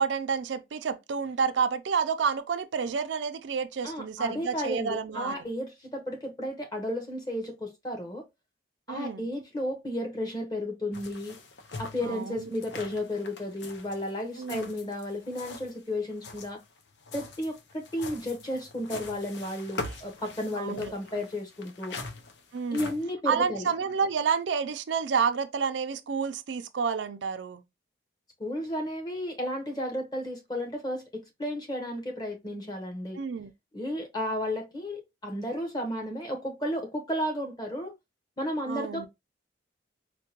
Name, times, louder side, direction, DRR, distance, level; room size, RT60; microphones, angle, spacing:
voice 1, 0.0-5.5 8.9-9.2 12.0-12.4 14.4-14.7 20.6-20.9 22.5-22.9 23.3-27.6 33.2-33.5 38.7-39.1, right 6 dB, 90° right, 0.4 m, -29 dB
voice 2, 3.8-8.2 8.9-11.4 11.8-16.6 17.1-22.0 22.7-23.7 28.4-33.2 33.7-37.9 38.4-39.1, left 1 dB, 25° left, 1.0 m, -33 dB
sound 1, 10.9-15.8 16.1-23.0, left 3 dB, 75° left, 0.6 m, -43 dB
4.5 x 2.2 x 2.9 m
head